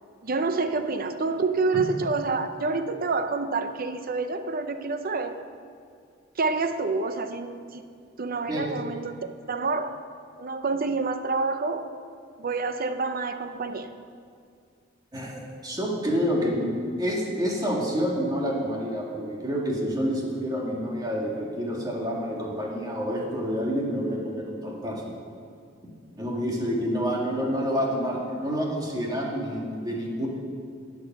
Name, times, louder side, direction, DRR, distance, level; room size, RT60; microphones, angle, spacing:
voice 1, 0.2-5.4 6.4-7.8 8.2-10.0 10.4-11.9 12.4-13.9, right 3 dB, 50° right, 9 dB, 0.7 m, -28 dB
voice 2, 15.1-16.7 17.0-25.1 26.1-30.3, equal, 20° right, -3 dB, 2.2 m, -28 dB
12.0 x 8.5 x 6.1 m, 2.3 s
head